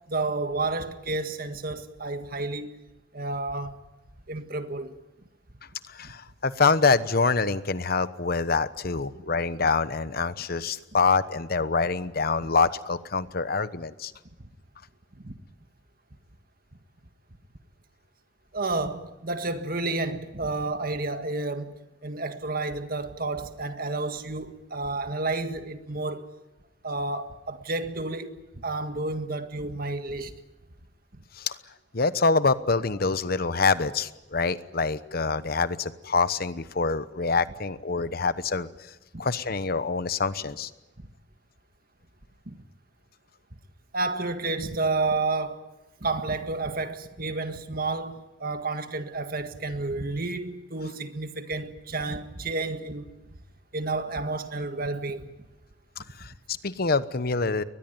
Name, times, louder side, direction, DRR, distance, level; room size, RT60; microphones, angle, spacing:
voice 1, 0.1-2.8 3.1-3.8 4.3-5.0 6.0-6.1 15.2-15.3 18.5-26.3 26.8-30.3 31.1-31.2 39.1-39.2 42.5-42.6 43.9-45.7 46.0-53.1 53.7-55.4, right 3 dB, 50° right, 1.8 m, -31 dB
voice 2, 5.9-14.1 31.4-31.6 31.9-38.7 39.2-40.7 56.2-57.6, left 4 dB, 55° left, 1.0 m, -25 dB
22.5 x 19.5 x 9.4 m
head